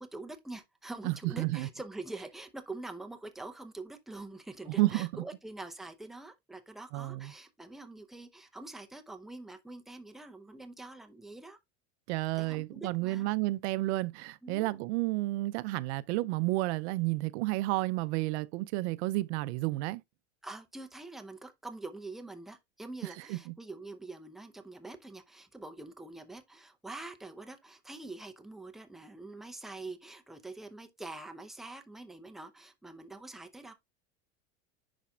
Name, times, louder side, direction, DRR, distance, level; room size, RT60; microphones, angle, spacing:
voice 1, 0.0-11.6 12.4-13.3 14.4-14.7 20.4-33.7, right 2 dB, ahead, 0.6 m, -45 dB
voice 2, 1.0-1.7 4.8-5.1 6.9-7.3 12.1-20.0 23.3-23.5, right 19 dB, 75° right, 0.5 m, -31 dB
10.5 x 4.1 x 2.3 m
supercardioid pair, 140°, 33 cm